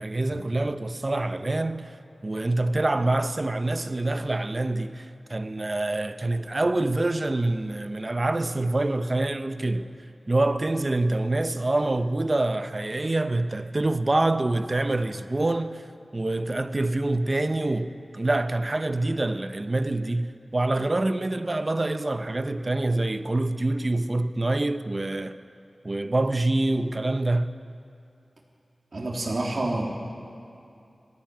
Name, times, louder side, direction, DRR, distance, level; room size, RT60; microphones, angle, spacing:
voice 1, 0.0-1.9 2.2-9.9 10.3-15.9 16.1-25.4 25.8-27.5, right 2 dB, 35° right, 0.9 m, -26 dB
voice 2, 28.9-29.8, right 2 dB, 60° right, 3.3 m, -28 dB
20.0 x 15.0 x 9.3 m
wide cardioid pair, 70°, 0 cm